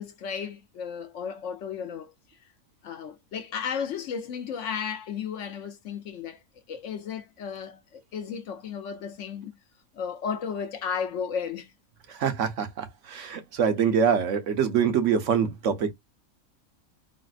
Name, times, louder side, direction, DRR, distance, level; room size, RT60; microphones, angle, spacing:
voice 1, 0.0-2.1 2.8-6.4 6.7-9.5 9.9-11.7, left 7 dB, 65° left, 0.9 m, -34 dB
voice 2, 12.1-15.9, right 7 dB, 65° right, 1.1 m, -25 dB
4.0 x 2.0 x 2.4 m
omnidirectional pair, 1.4 m